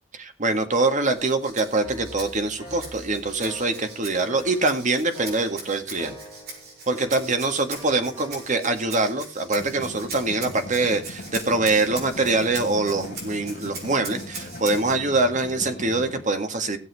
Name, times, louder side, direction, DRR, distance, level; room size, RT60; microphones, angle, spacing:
voice 1, 0.1-6.2 6.9-16.8, right 3 dB, 40° right, 7 dB, 1.8 m, -24 dB
Rattle (instrument), 1.1-15.0, right 3 dB, 55° right, 5.2 m, -41 dB
sound 1, 1.7-8.6, equal, 15° right, 5.7 m, -45 dB
sound 2, 9.5-16.2, left 1 dB, 50° left, 1.6 m, -39 dB
16.5 x 7.7 x 4.7 m, 0.34 s
head